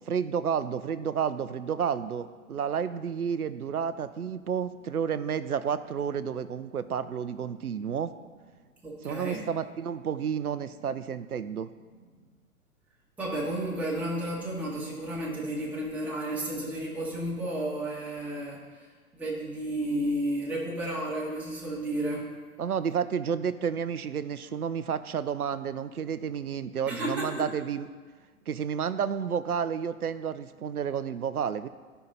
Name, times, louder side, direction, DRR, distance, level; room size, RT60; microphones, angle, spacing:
voice 1, 0.1-8.1 9.0-11.7 22.6-27.9 28.5-31.7, right 7 dB, 85° right, 13 dB, 0.6 m, -31 dB
voice 2, 8.8-9.5 13.2-18.6 19.1-22.3 26.8-27.5, right 1 dB, 5° right, -7 dB, 1.9 m, -32 dB
14.5 x 5.6 x 4.2 m, 1.4 s
figure-of-eight pair, 110°, 43 cm